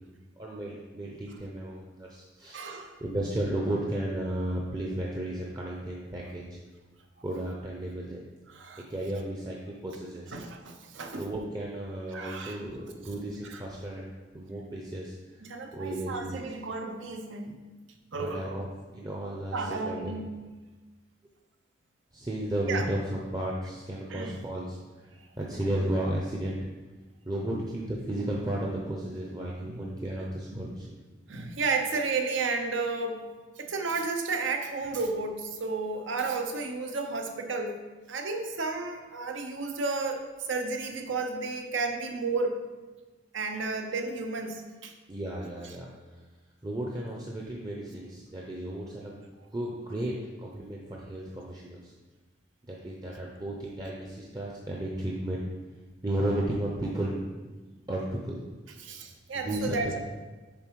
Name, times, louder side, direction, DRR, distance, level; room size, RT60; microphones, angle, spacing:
voice 1, 0.4-2.7 3.0-6.6 7.2-8.2 8.9-10.3 11.1-14.1 14.3-15.1 15.7-16.4 17.5-17.6 18.1-18.7 18.9-20.2 22.1-25.1 25.4-26.5 27.2-30.9 45.1-45.9 46.6-49.2 49.5-51.9 52.7-55.4 56.0-57.2 57.9-58.4 59.3-60.0, right 1 dB, 20° right, -3 dB, 0.6 m, -34 dB
voice 2, 2.5-3.0 8.5-8.9 10.3-11.3 12.1-12.6 13.4-13.6 15.4-17.5 18.1-18.6 19.5-20.4 22.7-22.9 24.1-24.4 29.6-29.8 30.5-30.8 31.3-33.2 33.6-37.8 38.1-42.6 43.3-44.9 58.8-60.0, right 3 dB, 75° right, 5 dB, 0.8 m, -32 dB
7.0 x 4.3 x 4.6 m, 1.3 s
head